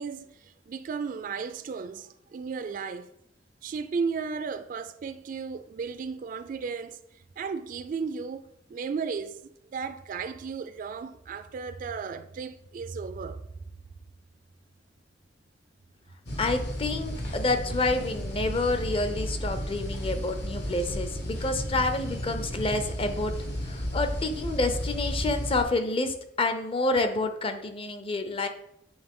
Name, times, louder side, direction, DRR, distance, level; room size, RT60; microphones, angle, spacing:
voice 1, 0.0-3.1 3.6-7.0 7.4-9.4 9.7-13.4, right 5 dB, 45° right, 0.3 m, -34 dB
sound 1, 16.3-25.6, equal, 65° left, 1.3 m, -33 dB
voice 2, 16.4-23.3 23.6-28.5, left 2 dB, 30° left, 0.6 m, -28 dB
8.8 x 3.2 x 3.6 m
head